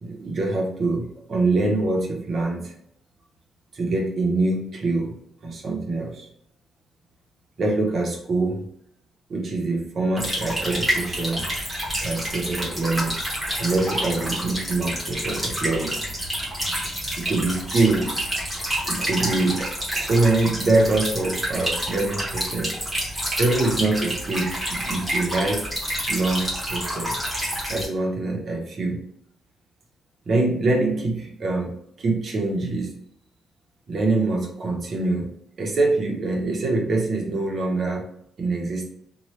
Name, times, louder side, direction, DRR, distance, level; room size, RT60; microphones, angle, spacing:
voice 1, 0.0-2.7 3.7-5.1 5.4-6.3 7.6-8.6 9.3-11.5 12.0-13.2 13.6-15.9 17.2-18.2 18.8-19.7 19.9-22.7 23.4-25.6 26.1-27.2 27.7-29.0 30.3-31.7 32.0-32.9 33.9-35.3 35.6-38.0 38.4-38.9, right 2 dB, 35° right, -1 dB, 0.7 m, -24 dB
sound 1, 10.2-27.9, equal, 5° right, 1.0 m, -28 dB
2.9 x 2.2 x 3.0 m, 0.71 s
cardioid pair, 180°, 0 cm